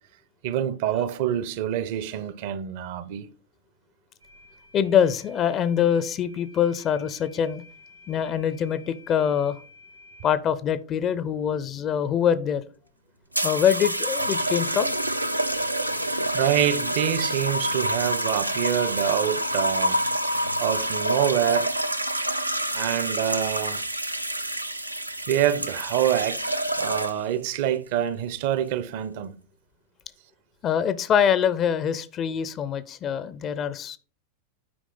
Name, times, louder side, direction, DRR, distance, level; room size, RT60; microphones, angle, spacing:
voice 1, 0.4-3.3 16.3-20.0 20.6-21.8 22.7-23.8 25.3-29.4, right 10 dB, 50° right, 0.6 m, -26 dB
sound 1, 4.2-10.3, left 2 dB, 70° right, 2.3 m, -52 dB
voice 2, 4.7-7.6 8.1-9.6 10.2-12.6 13.4-15.0 30.6-34.0, left 8 dB, 30° left, 0.4 m, -24 dB
sound 2, 13.3-27.4 28.2-28.6, right 1 dB, 85° right, 0.4 m, -27 dB
8.6 x 4.9 x 3.7 m
figure-of-eight pair, 90°, 0 cm